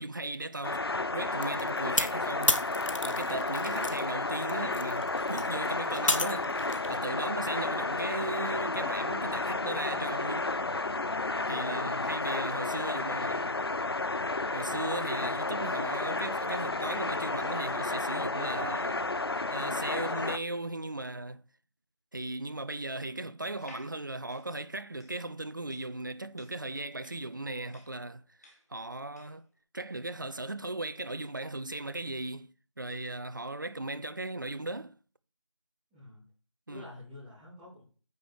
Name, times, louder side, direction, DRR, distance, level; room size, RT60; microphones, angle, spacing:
voice 1, 0.0-2.6 3.0-6.6 6.9-10.5 11.5-13.5 14.5-19.1 19.5-21.4 22.1-28.4 28.7-29.4 29.7-35.0 36.7-36.9, right 2 dB, 40° right, 0.5 m, -37 dB
sound 1, 0.6-20.4, left 3 dB, 50° left, 0.5 m, -32 dB
sound 2, 1.4-4.0 4.4-6.9, left 2 dB, 90° left, 1.2 m, -31 dB
voice 2, 11.8-12.1 35.9-36.2 36.7-37.8, left 2 dB, 5° right, 1.3 m, -49 dB
sound 3, 23.5-29.5, left 1 dB, 30° left, 2.4 m, -58 dB
9.2 x 5.1 x 4.7 m
figure-of-eight pair, 170°, 16 cm